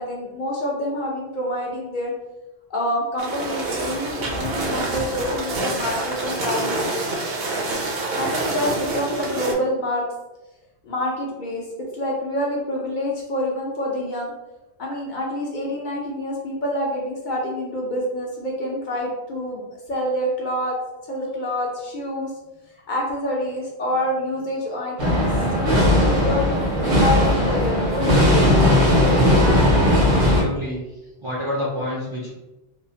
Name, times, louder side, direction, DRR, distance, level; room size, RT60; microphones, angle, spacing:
voice 1, 0.0-2.1 2.7-7.0 8.2-10.0 10.8-11.6 11.9-14.3 14.8-19.6 19.9-20.7 21.1-22.3 22.9-28.4 29.6-29.7, left 1 dB, 55° left, -3 dB, 0.6 m, -27 dB
sound 1, 3.2-9.5, right 2 dB, 65° right, 0.7 m, -27 dB
sound 2, 25.0-30.4, left 1 dB, 85° right, 1.2 m, -17 dB
voice 2, 30.1-30.8 31.2-32.3, equal, 45° right, -7 dB, 0.4 m, -28 dB
3.0 x 2.0 x 2.6 m, 1.0 s
omnidirectional pair, 1.1 m